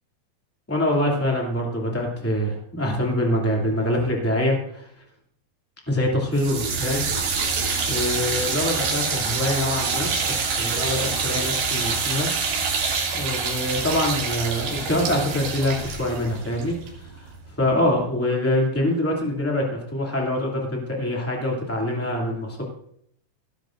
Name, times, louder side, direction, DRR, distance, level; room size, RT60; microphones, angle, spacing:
voice 1, 0.7-4.9 5.9-7.1 7.4-7.6 7.9-12.3 13.1-22.6, left 1 dB, 10° left, -2 dB, 0.9 m, -25 dB
sound 1, 6.3-17.4, right 5 dB, 60° right, 3.8 m, -26 dB
18.5 x 12.0 x 2.6 m, 0.69 s
omnidirectional pair, 5.2 m